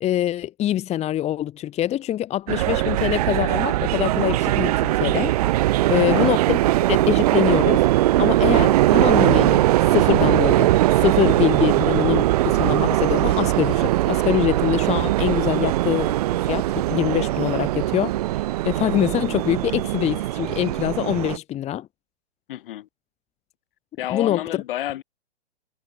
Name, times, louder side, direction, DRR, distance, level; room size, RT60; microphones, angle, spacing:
voice 1, 0.0-5.3 5.9-6.6 6.9-7.9 8.2-10.7 10.9-16.2 16.4-18.1 18.6-21.9 24.1-24.4, left 12 dB, 20° left, 1.4 m, -24 dB
sound 1, 2.5-21.4, right 16 dB, 35° right, 0.4 m, -20 dB
voice 2, 22.5-22.9 24.0-25.0, left 13 dB, 55° left, 2.8 m, -30 dB
hypercardioid pair, 120°, 33 cm